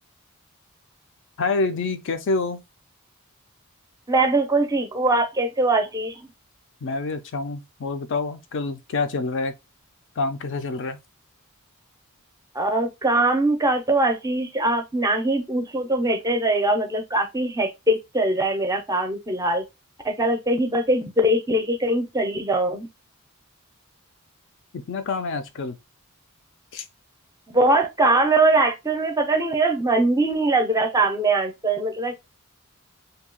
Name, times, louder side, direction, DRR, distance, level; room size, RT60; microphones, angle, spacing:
voice 1, 1.4-2.6 6.8-9.5 10.2-11.0 24.7-25.8 26.7-26.8, left 3 dB, 60° left, 0.4 m, -27 dB
voice 2, 4.1-6.3 12.5-19.6 20.0-22.9 27.5-32.1, right 2 dB, 15° right, 0.5 m, -22 dB
2.7 x 2.3 x 3.7 m
head